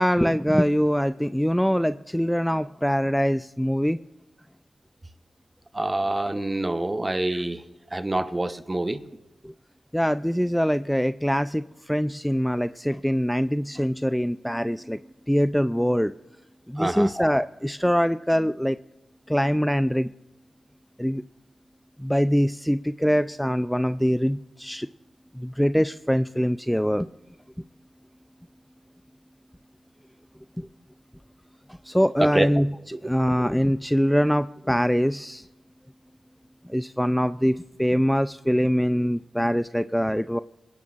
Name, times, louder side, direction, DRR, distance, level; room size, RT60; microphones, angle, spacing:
voice 1, 0.0-4.0 9.4-9.5 9.9-15.0 15.3-16.1 16.7-18.8 19.3-20.1 21.0-21.2 22.0-24.9 25.3-27.1 30.6-30.7 31.7-32.7 33.0-35.5 36.6-40.4, equal, 5° left, 12 dB, 0.4 m, -23 dB
voice 2, 5.7-7.6 7.9-9.0 16.8-17.1 32.2-32.5, right 2 dB, 25° right, 10 dB, 1.0 m, -26 dB
21.5 x 17.0 x 2.5 m, 1.0 s
cardioid pair, 50°, 0 cm